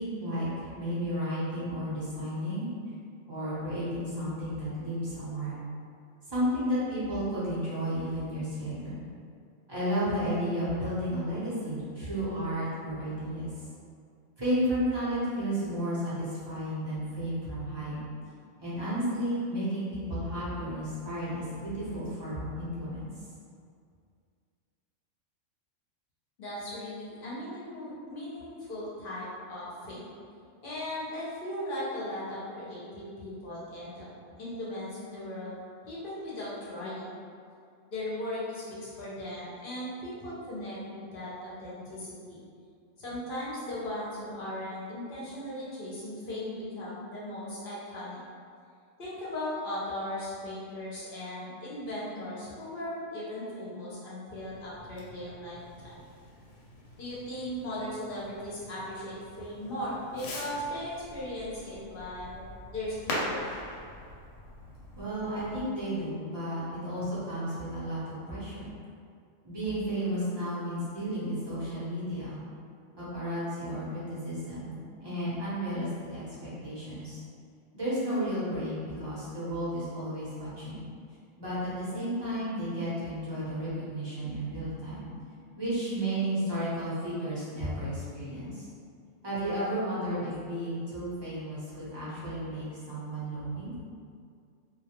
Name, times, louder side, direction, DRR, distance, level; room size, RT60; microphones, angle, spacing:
voice 1, 0.0-2.7 3.3-5.5 6.3-9.0 9.7-13.5 14.4-18.0 18.6-23.1 64.9-68.7 69.4-72.4 73.0-74.7 75.0-77.2 77.7-80.8 81.4-85.1 85.6-88.7 89.2-93.7, equal, 30° right, -11 dB, 0.5 m, -33 dB
voice 2, 26.4-30.1 30.6-34.1 34.4-37.2 37.9-42.4 43.0-48.2 49.0-55.6 57.0-62.4 62.7-63.6, left 1 dB, 55° left, -8 dB, 0.7 m, -37 dB
Fireworks, 54.3-65.7, left 1 dB, 85° left, 0.9 m, -43 dB
2.2 x 2.1 x 2.8 m, 2.3 s
omnidirectional pair, 1.3 m